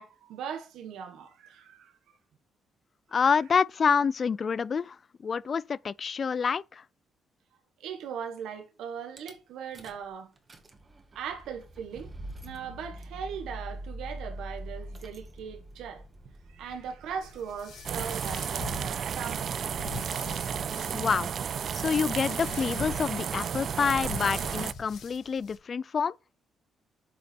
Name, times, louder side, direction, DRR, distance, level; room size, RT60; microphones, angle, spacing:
voice 1, 0.0-1.9 7.8-10.3 11.1-12.1 12.4-16.0 16.5-19.7, right 7 dB, 85° right, 1.4 m, -39 dB
voice 2, 3.1-5.0 5.2-6.8 20.9-21.3 21.7-26.1, left 6 dB, 45° left, 0.4 m, -27 dB
Rattle / Car / Engine starting, 9.2-9.3 9.7-10.1 10.4-18.1, right 1 dB, 30° right, 2.0 m, -44 dB
sound 1, 17.2-25.6, left 5 dB, 75° left, 4.1 m, -44 dB
sound 2, 17.8-24.7, right 8 dB, 55° right, 0.3 m, -32 dB
8.6 x 5.1 x 4.5 m
cardioid pair, 90°, 0 cm